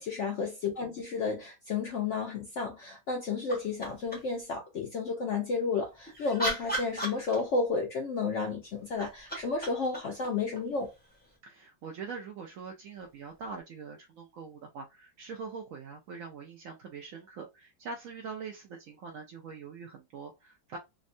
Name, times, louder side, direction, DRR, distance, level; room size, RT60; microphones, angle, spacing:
voice 1, 0.0-10.9, left 4 dB, 70° left, 0.7 m, -32 dB
sound 1, 3.5-4.4 5.9-7.8 8.8-11.4 13.4-13.5, right 1 dB, 15° left, 0.4 m, -37 dB
voice 2, 11.4-20.8, right 5 dB, 75° right, 0.7 m, -43 dB
3.5 x 2.1 x 2.5 m
omnidirectional pair, 1.9 m